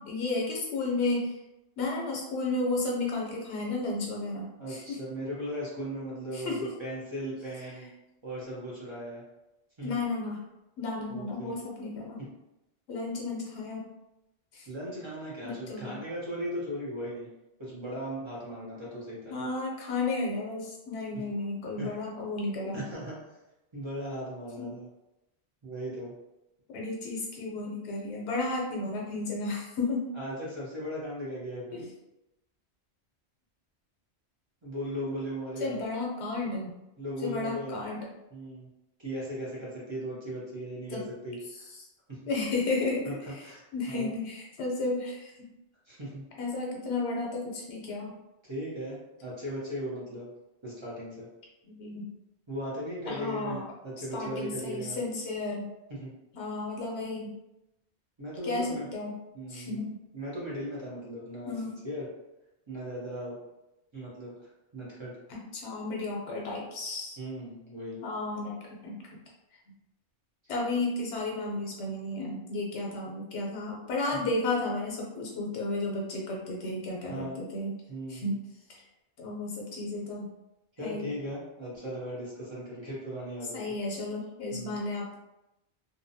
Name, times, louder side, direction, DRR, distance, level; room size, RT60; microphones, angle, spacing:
voice 1, 0.0-1.3 1.8-5.0 6.3-6.7 9.8-10.4 10.8-12.2 12.9-13.8 14.5-14.7 15.4-16.0 19.3-22.8 24.6-24.7 26.7-30.1 31.7-31.9 35.6-36.7 37.2-38.1 40.9-41.0 41.5-41.9 42.3-45.5 46.4-48.2 51.7-52.1 53.0-53.6 54.1-55.7 56.3-57.3 58.4-59.2 59.5-60.0 61.5-61.8 65.3-67.2 68.0-69.0 70.5-77.8 78.1-78.4 78.7-78.8 79.2-80.3 80.8-81.1 83.5-85.2, left 2 dB, 90° left, -2 dB, 0.9 m, -33 dB
voice 2, 4.6-7.9 8.2-9.2 9.8-9.9 11.1-11.5 14.7-17.3 17.6-19.3 21.8-21.9 22.7-23.1 23.7-24.9 25.6-26.1 30.2-31.8 34.6-35.8 37.0-37.8 38.3-38.7 39.0-41.7 42.1-42.2 43.1-43.2 43.4-43.6 43.9-44.1 45.9-46.2 48.5-50.3 50.6-51.3 52.5-55.0 56.0-56.1 58.2-58.9 59.3-59.8 60.1-61.5 61.8-62.1 62.7-63.4 63.9-65.1 67.2-68.0 77.1-77.4 77.9-78.3 80.8-83.6 84.5-84.8, equal, 30° right, -7 dB, 0.7 m, -37 dB
2.6 x 2.1 x 2.6 m, 0.93 s
omnidirectional pair, 1.1 m